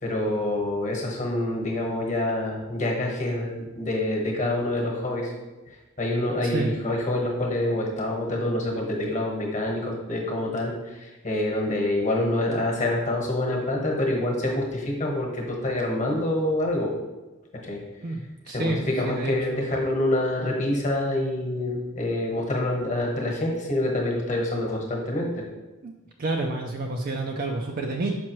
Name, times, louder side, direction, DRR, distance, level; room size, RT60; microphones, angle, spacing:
voice 1, 0.0-5.3 6.0-16.9 17.6-17.8 18.5-25.4, left 1 dB, 35° left, -1 dB, 1.2 m, -26 dB
voice 2, 18.0-19.8 25.8-25.9 26.2-28.2, right 2 dB, 45° right, 1 dB, 0.4 m, -29 dB
6.0 x 5.4 x 3.1 m, 1.2 s
head